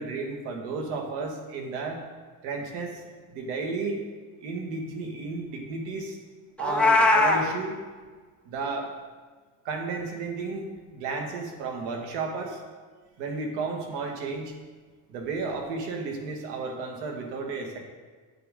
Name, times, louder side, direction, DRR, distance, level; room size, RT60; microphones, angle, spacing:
voice 1, 0.0-2.0 2.4-3.0 3.3-4.0 4.4-6.2 6.6-7.8 8.5-8.9 9.7-10.7 10.9-12.6 13.2-14.5 15.1-17.8, right 4 dB, 90° right, 2 dB, 1.9 m, -33 dB
Meow, 6.6-7.4, left 2 dB, 5° left, 0.7 m, -20 dB
11.0 x 8.0 x 3.8 m, 1.5 s
cardioid pair, 160°, 40 cm